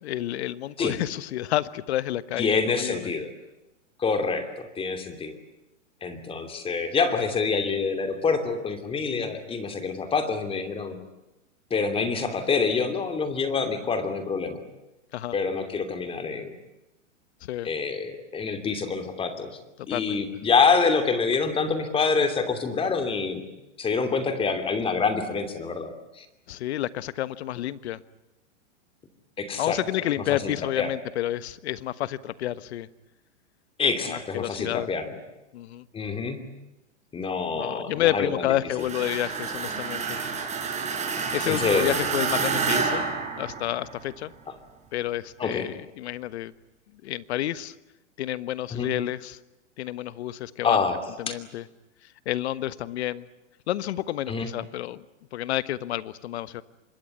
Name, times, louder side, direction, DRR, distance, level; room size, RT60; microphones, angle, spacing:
voice 1, 0.0-3.1 9.1-9.4 15.1-15.3 17.5-17.7 19.9-20.2 26.5-28.0 29.6-32.9 34.1-34.9 35.5-35.9 37.5-40.2 41.3-43.0 43.4-44.3 44.9-46.5 47.0-47.7 48.2-49.4 49.8-50.8 51.2-51.6 52.2-53.2 53.7-55.0 55.3-56.6, left 13 dB, 60° left, 16 dB, 1.4 m, -30 dB
voice 2, 2.4-3.3 4.0-5.4 6.0-11.0 11.7-14.6 15.3-16.5 17.6-19.5 19.9-23.4 23.8-26.2 29.4-29.8 30.3-30.5 30.8-30.9 33.8-35.1 35.9-36.4 37.1-38.5 41.5-42.0 45.4-45.7 48.7-48.9 50.6-51.0 51.3-51.4 54.3-54.5, left 5 dB, 15° left, 8 dB, 2.8 m, -26 dB
sound 1, 38.8-44.0, right 5 dB, 20° right, 5.1 m, -29 dB
25.5 x 21.0 x 9.6 m, 0.97 s
hypercardioid pair, 140°, 38 cm